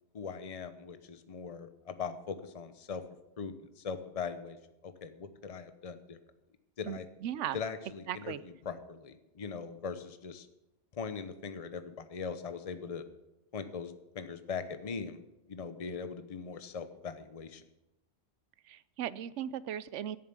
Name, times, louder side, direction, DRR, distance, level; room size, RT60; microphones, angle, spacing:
voice 1, 0.1-3.0 3.4-4.6 4.8-6.2 6.8-7.1 7.5-10.5 10.9-13.0 13.5-15.2 15.5-17.6, left 5 dB, 35° left, 10 dB, 0.9 m, -40 dB
voice 2, 6.8-7.6 8.1-8.4 18.7-20.2, right 10 dB, 85° right, 17 dB, 1.0 m, -37 dB
13.0 x 7.2 x 9.5 m, 0.94 s
omnidirectional pair, 1.2 m